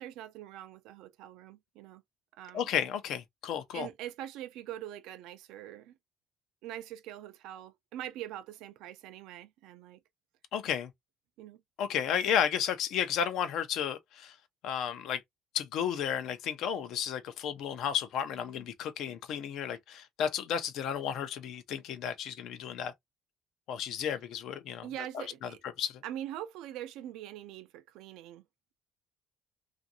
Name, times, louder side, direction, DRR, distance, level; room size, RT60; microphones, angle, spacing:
voice 1, 0.0-2.0 2.4-2.7 3.7-6.0 6.6-10.0 11.4-11.6 24.8-25.6 26.0-28.4, right 12 dB, 90° right, 0.4 m, -43 dB
voice 2, 2.5-3.9 10.5-10.9 11.8-14.3 14.6-15.2 15.5-22.9 23.7-24.9 25.1-25.2 25.8-26.0, left 8 dB, 70° left, 0.5 m, -33 dB
2.5 x 2.5 x 2.6 m
cardioid pair, 140°, 0 cm